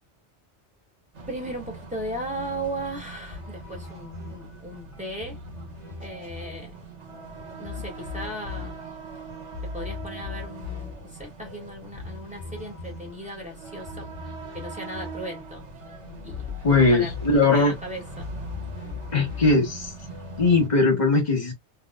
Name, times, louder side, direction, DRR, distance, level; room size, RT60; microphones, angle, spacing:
sound 1, 1.1-20.7, right 3 dB, 80° right, 1.6 m, -42 dB
voice 1, 1.3-5.4 6.0-6.7 7.6-8.8 9.7-14.1 14.5-15.6 16.2-17.1 17.4-18.3, right 1 dB, 5° right, 1.8 m, -36 dB
sound 2, 3.3-20.6, left 5 dB, 15° left, 1.6 m, -40 dB
voice 2, 16.6-17.7 19.1-19.9 20.4-21.5, left 3 dB, 40° left, 1.5 m, -20 dB
3.5 x 3.1 x 2.4 m
omnidirectional pair, 1.2 m